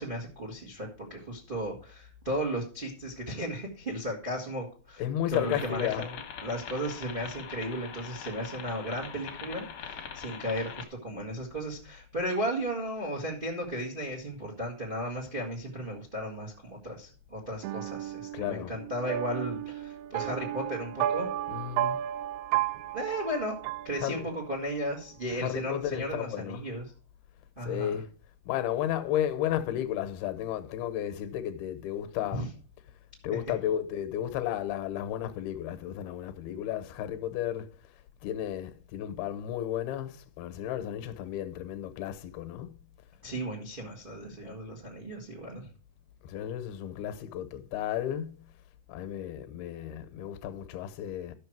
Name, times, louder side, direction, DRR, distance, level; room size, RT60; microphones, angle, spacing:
voice 1, 0.0-5.0 5.3-21.3 22.9-23.6 23.8-26.8 27.6-27.9 32.3-32.5 43.2-45.7, equal, 55° right, 0.5 m, -35 dB
voice 2, 5.0-6.1 18.3-18.8 21.5-22.0 23.9-24.3 25.3-26.7 27.6-28.1 28.4-32.5 33.2-37.7 38.2-42.7 46.2-48.4 48.9-51.3, left 11 dB, 75° left, 2.7 m, -33 dB
sound 1, 5.3-10.9, left 7 dB, 60° left, 1.7 m, -42 dB
sound 2, 17.6-24.6, right 12 dB, 80° right, 2.5 m, -33 dB
12.0 x 6.4 x 4.6 m
omnidirectional pair, 4.7 m